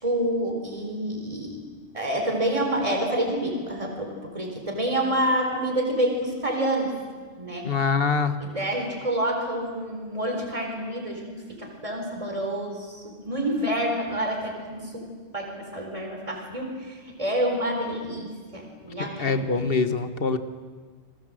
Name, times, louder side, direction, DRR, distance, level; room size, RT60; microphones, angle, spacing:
voice 1, 0.0-1.6 1.9-6.9 7.3-7.7 8.4-19.6, right 1 dB, 30° right, 1 dB, 4.5 m, -28 dB
voice 2, 7.6-8.3 19.0-20.4, left 5 dB, 55° left, 10 dB, 1.6 m, -24 dB
28.0 x 21.5 x 7.8 m, 1.5 s
omnidirectional pair, 1.2 m